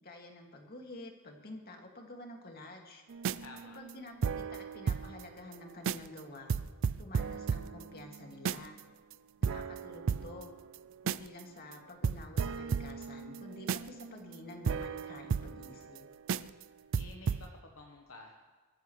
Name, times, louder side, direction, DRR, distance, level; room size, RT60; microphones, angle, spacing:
voice 1, 0.0-3.0 3.7-6.6 7.0-8.8 9.4-10.5 11.0-16.1, left 2 dB, 45° left, 1 dB, 2.3 m, -49 dB
sound 1, 3.1-5.2 5.5-5.6 5.8-6.2 6.5-8.8 9.1-9.2 9.4-11.4 11.7-11.8 12.0-16.0 16.3-16.6 16.9-17.5, right 6 dB, 60° right, 0.4 m, -34 dB
voice 2, 3.4-3.8 16.9-18.3, left 2 dB, 65° left, 1 dB, 1.2 m, -51 dB
23.0 x 14.0 x 3.3 m, 1.4 s
head